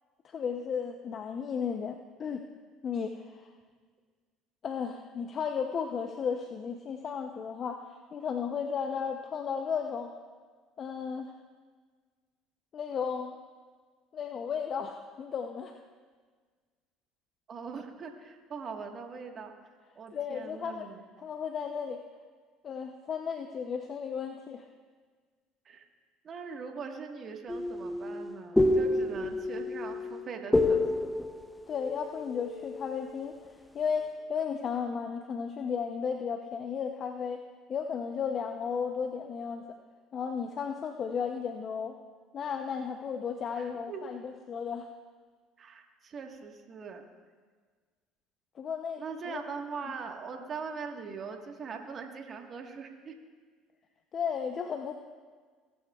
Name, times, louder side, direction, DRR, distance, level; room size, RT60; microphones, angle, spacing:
voice 1, 0.2-2.4 2.8-3.5 4.6-7.8 8.1-10.1 10.8-11.3 12.7-13.4 14.1-15.8 20.1-20.9 21.2-22.0 22.6-24.6 31.7-33.4 33.7-37.4 37.7-39.7 40.1-42.0 42.3-44.9 48.6-49.4 54.1-55.0, left 6 dB, 45° left, 5 dB, 0.7 m, -34 dB
voice 2, 17.5-19.5 19.9-21.0 25.6-25.8 26.2-30.8 43.6-44.1 45.6-47.0 49.0-53.2, right 5 dB, 45° right, 3 dB, 1.5 m, -41 dB
sound 1, 27.5-33.1, left 2 dB, 10° left, 0.7 m, -29 dB
18.0 x 11.5 x 2.4 m, 1.5 s
hypercardioid pair, 75°, 0 cm